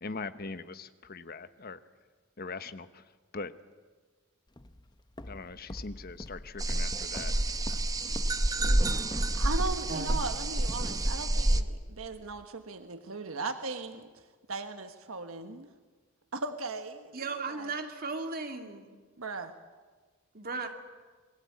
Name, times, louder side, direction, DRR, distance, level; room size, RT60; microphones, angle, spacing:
voice 1, 0.0-1.8 2.4-2.9 3.3-3.5 5.3-7.3, left 4 dB, 45° left, 1.1 m, -41 dB
Walk footsteps, 4.6-12.4, left 1 dB, 20° left, 0.8 m, -45 dB
sound 1, 6.6-11.6, right 1 dB, 15° right, 0.8 m, -28 dB
voice 2, 9.3-14.2 14.5-15.7 16.3-17.7 19.2-19.5, right 3 dB, 85° right, 1.3 m, -38 dB
voice 3, 17.1-18.9 20.3-20.7, right 3 dB, 45° right, 2.5 m, -36 dB
27.5 x 21.0 x 8.5 m
head